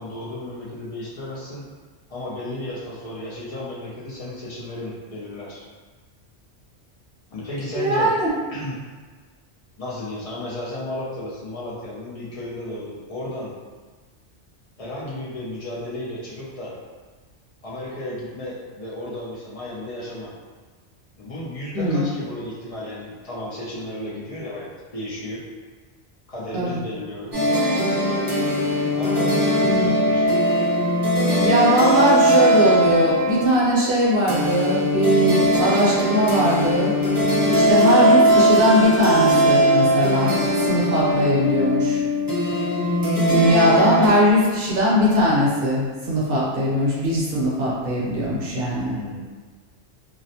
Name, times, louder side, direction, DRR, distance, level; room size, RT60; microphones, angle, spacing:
voice 1, 0.0-1.6 2.1-5.6 7.3-8.1 8.5-8.7 9.8-13.5 14.8-16.7 17.6-20.3 21.2-25.4 26.3-27.4 29.0-30.2 48.9-49.2, left 1 dB, 55° left, -7 dB, 0.4 m, -33 dB
voice 2, 7.7-8.3 21.7-22.1 26.5-26.8 29.6-29.9 31.4-37.0 37.5-40.3 40.6-42.0 43.3-49.0, equal, 60° right, -7 dB, 0.8 m, -20 dB
sound 1, 27.3-44.1, equal, 25° right, 0.6 m, -20 dB
2.4 x 2.0 x 2.7 m, 1.4 s
omnidirectional pair, 1.2 m